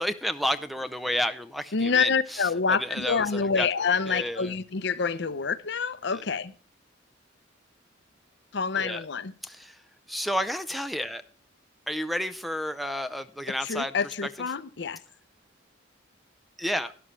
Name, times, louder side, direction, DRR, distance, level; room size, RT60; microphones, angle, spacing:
voice 1, 0.0-2.5 2.8-3.7 4.1-4.5 6.1-6.2 8.8-9.0 9.4-9.8 10.1-11.2 11.9-13.9 14.2-14.3 16.6-16.9, equal, ahead, 0.5 m, -31 dB
voice 2, 1.7-6.5 8.5-9.3 13.6-15.0, left 5 dB, 60° left, 0.7 m, -27 dB
12.5 x 11.5 x 3.2 m
head